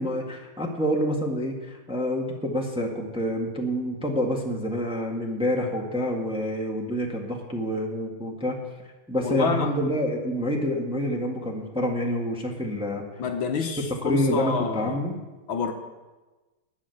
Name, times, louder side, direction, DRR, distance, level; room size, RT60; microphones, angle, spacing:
voice 1, 0.0-8.6 9.1-13.0 13.8-15.2, equal, 5° right, 0 dB, 1.5 m, -27 dB
voice 2, 9.2-9.7 13.2-15.1 15.5-15.7, left 5 dB, 70° left, 5 dB, 1.8 m, -28 dB
19.0 x 6.4 x 7.9 m, 1.2 s
omnidirectional pair, 2.3 m